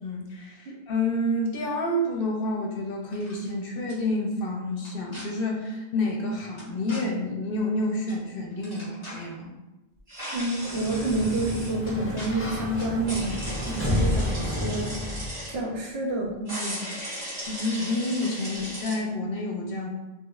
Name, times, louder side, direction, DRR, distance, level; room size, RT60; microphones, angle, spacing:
voice 1, 0.0-9.5 17.5-19.9, left 1 dB, 70° left, 0 dB, 0.8 m, -29 dB
sound 1, 3.0-3.5 3.9-4.0 4.8-5.2 6.6-7.0 8.1-8.2 8.5-9.3 10.3-10.4 10.7-11.0 11.8-12.3 12.7-12.9, left 1 dB, 40° left, 1.3 m, -43 dB
sound 2, 10.1-11.7 13.1-15.5 16.5-19.0, equal, 50° right, 1.3 m, -37 dB
voice 2, 10.3-15.0 15.5-16.9, right 2 dB, 80° right, -1 dB, 0.9 m, -29 dB
Sliding door, 10.6-15.5, left 1 dB, 20° left, 0.5 m, -30 dB
3.1 x 3.0 x 2.3 m, 1.0 s
omnidirectional pair, 1.0 m